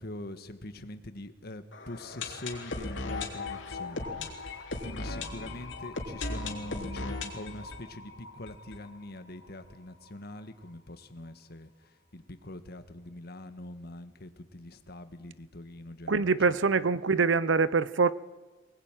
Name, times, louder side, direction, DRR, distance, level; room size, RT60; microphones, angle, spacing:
voice 1, 0.0-16.7, left 1 dB, 55° left, 1.6 m, -44 dB
sound 1, 1.7-9.5 9.8-9.9 10.0-10.1 10.7-10.8, left 3 dB, 85° left, 3.3 m, -37 dB
voice 2, 16.1-18.1, right 4 dB, 90° right, 0.8 m, -24 dB
24.0 x 19.5 x 9.1 m
head